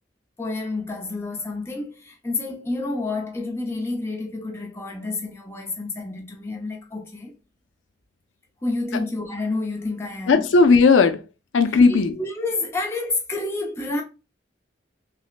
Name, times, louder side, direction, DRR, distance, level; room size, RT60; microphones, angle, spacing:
voice 1, 0.4-7.3 8.6-10.5 11.9-14.0, left 2 dB, 15° left, 0.7 m, -29 dB
voice 2, 10.3-11.2 11.5-12.2, left 4 dB, 80° left, 0.5 m, -16 dB
5.9 x 2.1 x 2.4 m
head